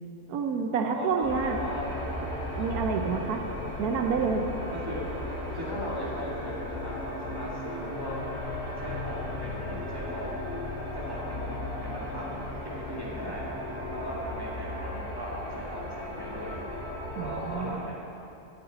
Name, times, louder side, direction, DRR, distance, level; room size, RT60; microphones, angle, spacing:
voice 1, 0.3-1.6 2.6-3.4 3.8-4.5 17.1-17.8, right 5 dB, 80° right, 4 dB, 1.2 m, -28 dB
voice 2, 0.9-1.9 2.7-2.8 4.7-5.0 5.5-8.2 8.8-10.3 11.0-13.5 13.9-16.6 17.2-18.0, equal, 15° right, -5 dB, 2.1 m, -38 dB
sound 1, 1.2-17.7, left 1 dB, 35° left, 3.6 m, -36 dB
sound 2, 8.4-11.2, left 1 dB, 35° right, 1.7 m, -44 dB
17.5 x 8.1 x 4.0 m, 2.7 s
omnidirectional pair, 1.6 m